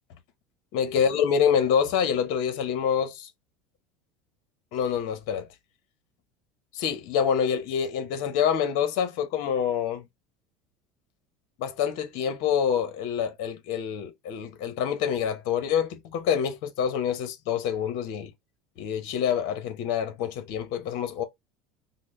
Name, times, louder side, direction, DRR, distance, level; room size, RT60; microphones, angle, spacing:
voice 1, 0.7-3.3 4.7-5.5 6.7-10.0 11.6-18.3 18.8-21.2, left 8 dB, 70° left, 0.9 m, -26 dB
3.9 x 2.0 x 3.2 m
supercardioid pair, 105°, 3 cm